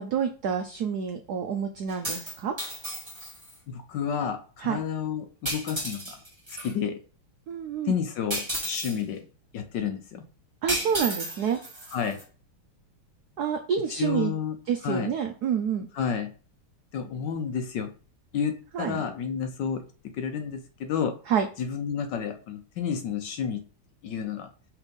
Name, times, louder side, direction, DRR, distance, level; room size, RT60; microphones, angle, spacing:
voice 1, 0.0-2.5 4.6-4.8 7.5-8.0 10.6-11.6 13.4-14.3 14.7-15.9 18.7-19.0 21.3-21.5, right 7 dB, 85° right, 5 dB, 0.8 m, -28 dB
sound 1, 1.9-3.6 5.5-6.7 8.3-9.0 10.7-12.2, right 1 dB, 15° right, 1.8 m, -33 dB
voice 2, 3.7-6.2 6.5-7.0 7.9-9.3 9.5-10.2 11.9-12.2 14.0-14.6 14.8-15.1 15.9-16.3 16.9-17.9 18.3-19.8 20.1-21.2 21.6-23.6 24.0-24.5, left 7 dB, 70° left, 7 dB, 1.1 m, -30 dB
5.7 x 3.5 x 5.2 m, 0.38 s
omnidirectional pair, 2.4 m